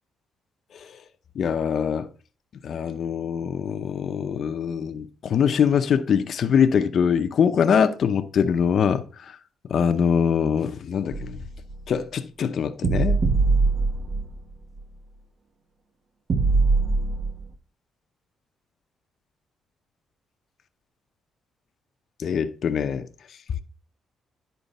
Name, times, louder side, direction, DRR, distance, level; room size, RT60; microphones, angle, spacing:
voice 1, 1.4-2.1 2.6-9.4 9.7-11.4 11.9-13.2 22.2-23.0, left 7 dB, 60° left, 0.7 m, -23 dB
sound 1, 11.1-11.9 12.8-14.5 14.8-14.9 16.3-17.4, right 3 dB, 50° right, 1.0 m, -22 dB
10.5 x 4.5 x 4.0 m
cardioid pair, 90°, 0 cm